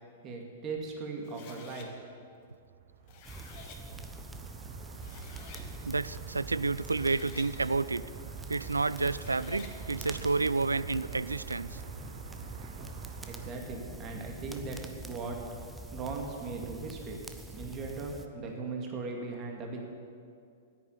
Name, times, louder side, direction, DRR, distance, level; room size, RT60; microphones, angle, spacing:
voice 1, 0.2-1.9 13.2-15.4 15.9-17.2 17.5-19.9, right 3 dB, 30° right, 1 dB, 2.3 m, -38 dB
sound 1, 1.2-1.9 2.9-3.8 4.6-4.7 5.0-5.7 6.7-7.5 9.0-9.8, left 6 dB, 40° left, 1.6 m, -50 dB
sound 2, 2.6-13.5, right 7 dB, 50° right, 1.1 m, -46 dB
sound 3, 3.2-18.3, right 2 dB, 10° right, 0.8 m, -45 dB
voice 2, 5.8-8.0 8.5-11.8, right 3 dB, 80° right, 17 dB, 0.3 m, -30 dB
10.0 x 9.6 x 9.6 m, 2.4 s
figure-of-eight pair, 105°, 0 cm